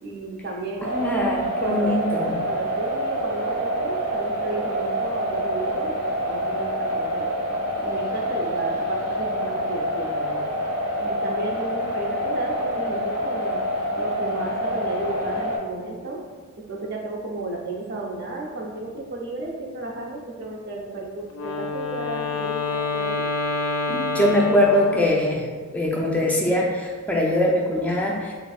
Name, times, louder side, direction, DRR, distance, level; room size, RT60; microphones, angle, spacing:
voice 1, 0.0-0.9 1.6-2.0 2.4-5.9 6.2-7.3 7.8-10.4 11.0-13.7 14.0-16.2 16.7-23.3, right 2 dB, 50° right, -1 dB, 0.5 m, -33 dB
voice 2, 0.8-2.4 23.9-25.5 25.7-28.3, left 1 dB, 5° left, -2 dB, 0.3 m, -22 dB
sound 1, 0.8-15.6, equal, 80° right, 0.9 m, -27 dB
Wind instrument woodwind instrument, 21.3-25.4, left 4 dB, 70° left, 0.4 m, -27 dB
3.4 x 3.0 x 2.3 m, 1.5 s
head